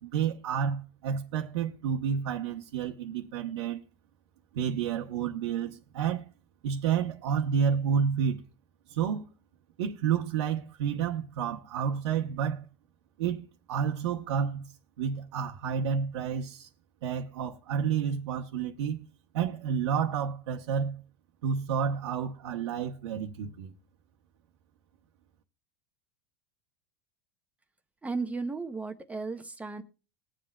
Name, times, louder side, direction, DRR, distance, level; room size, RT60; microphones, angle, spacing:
voice 1, 0.0-3.8 4.5-6.2 6.6-8.4 8.9-9.3 9.8-12.7 13.2-14.7 15.0-16.7 17.0-19.1 19.3-21.0 21.4-23.7, right 7 dB, 90° right, 0.9 m, -30 dB
voice 2, 28.0-29.8, right 4 dB, 10° right, 0.6 m, -34 dB
21.0 x 7.5 x 2.2 m
supercardioid pair, 140°, 14 cm